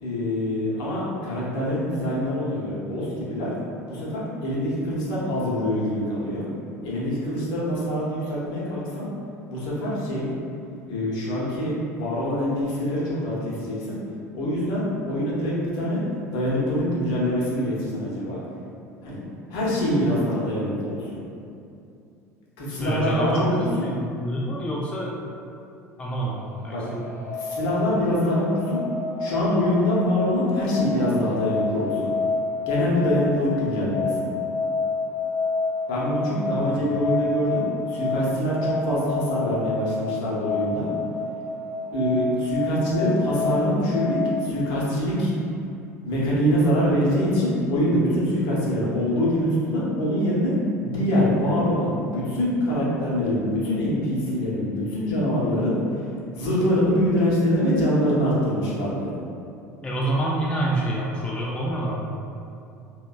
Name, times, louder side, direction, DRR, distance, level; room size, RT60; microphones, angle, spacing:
voice 1, 0.0-3.5 3.9-6.5 6.8-9.1 9.5-10.3 10.9-14.0 14.3-16.0 16.3-18.4 19.0-19.2 19.5-21.2 22.6-23.9 26.7-26.8 27.4-28.8 29.2-32.1 32.7-34.3 35.9-40.9 41.9-45.3 46.0-50.5 50.8-55.7 56.4-59.1, equal, 55° left, -6 dB, 0.8 m, -24 dB
voice 2, 22.8-25.1 26.0-27.2 36.8-36.9 59.8-62.1, right 1 dB, 10° left, -4 dB, 0.3 m, -27 dB
sound 1, 26.3-44.4, left 4 dB, 85° left, 0.5 m, -29 dB
2.9 x 2.2 x 2.2 m, 2.6 s
figure-of-eight pair, 70°, 9 cm